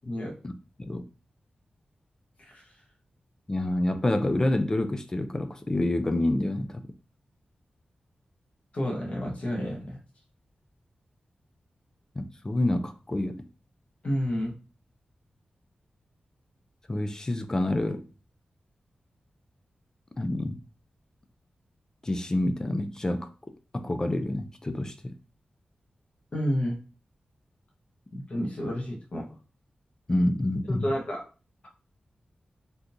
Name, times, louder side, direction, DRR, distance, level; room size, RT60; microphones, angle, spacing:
voice 1, 0.0-0.3 2.4-2.6 8.7-10.0 14.0-14.5 26.3-26.8 28.1-29.3 30.8-31.2, equal, 45° left, 1.0 m, -30 dB
voice 2, 3.5-6.8 12.2-13.4 16.9-18.1 20.2-20.6 22.0-23.3 23.7-25.1 30.1-30.9, left 1 dB, 20° left, 0.3 m, -27 dB
3.6 x 2.8 x 2.5 m
wide cardioid pair, 155°, 3 cm